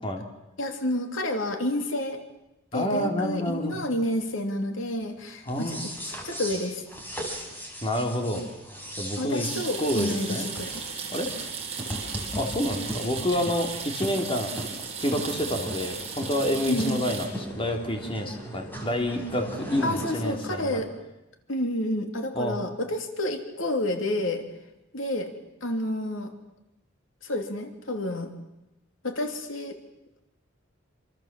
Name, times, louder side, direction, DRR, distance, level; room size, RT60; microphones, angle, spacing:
voice 1, 0.6-2.2 2.7-5.8 6.1-6.8 9.2-10.8 16.6-17.0 19.8-20.9 21.5-24.4 24.9-25.3 25.6-26.3 27.2-28.3 29.0-29.8, left 1 dB, 75° left, 5 dB, 3.0 m, -29 dB
voice 2, 2.7-3.8 5.5-5.9 7.8-8.4 9.0-9.5 9.8-10.5 11.1-11.3 12.4-14.5 15.0-20.8 22.3-22.6, equal, 25° left, 3 dB, 3.4 m, -28 dB
sound 1, 5.4-20.7, equal, 10° left, 5.8 m, -38 dB
sound 2, 9.4-17.3, right 6 dB, 35° right, 6.6 m, -36 dB
27.5 x 27.0 x 7.6 m, 0.93 s
head